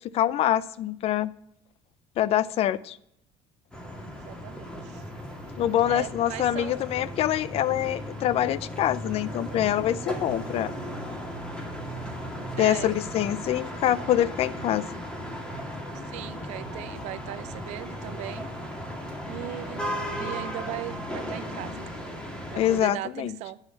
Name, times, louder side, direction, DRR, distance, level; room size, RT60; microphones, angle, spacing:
voice 1, 0.1-1.3 2.2-3.0 5.6-10.7 12.6-14.8 22.6-23.3, left 12 dB, 55° left, 0.5 m, -25 dB
sound 1, 3.7-22.8, equal, 5° left, 2.2 m, -36 dB
voice 2, 4.2-5.0 5.9-6.8 12.6-13.0 16.1-18.5 19.3-21.9 22.5-23.6, right 15 dB, 70° right, 0.6 m, -38 dB
9.5 x 5.6 x 5.9 m
supercardioid pair, 90°, 12 cm